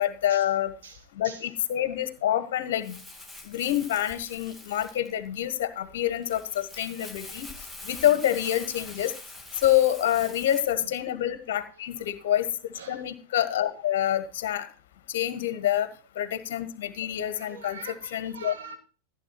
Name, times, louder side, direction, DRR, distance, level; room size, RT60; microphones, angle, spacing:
voice 1, 0.0-0.7 1.2-3.0 3.4-7.5 7.8-9.1 9.6-12.5 12.9-14.7 15.1-15.9 16.1-17.8 18.1-18.5, left 12 dB, 55° left, 11 dB, 1.6 m, -27 dB
voice 2, 0.8-1.5 5.9-6.0 10.8-10.9 12.0-12.3 12.7-13.0 17.4-18.8, right 4 dB, 60° right, 3 dB, 3.0 m, -45 dB
Crumpling crinkling, 2.8-10.7, left 2 dB, ahead, 1.9 m, -44 dB
15.0 x 8.4 x 4.5 m, 0.36 s
figure-of-eight pair, 90°, 0 cm